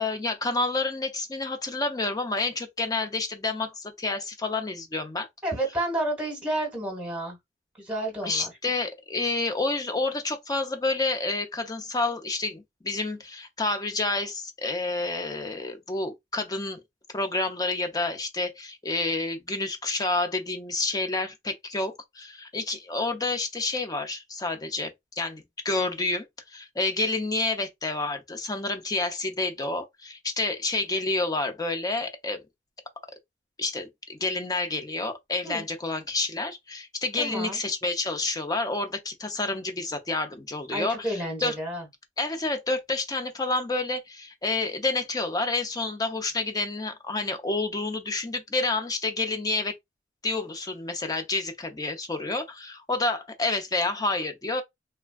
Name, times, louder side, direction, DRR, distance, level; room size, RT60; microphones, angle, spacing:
voice 1, 0.0-5.3 8.2-16.8 17.1-32.4 33.6-41.5 42.2-49.7 50.2-54.6, left 3 dB, 20° left, 0.5 m, -29 dB
voice 2, 5.4-7.4 7.8-8.5 35.4-35.6 37.2-37.6 40.7-41.9, right 1 dB, 5° right, 1.2 m, -30 dB
3.3 x 2.2 x 2.2 m
head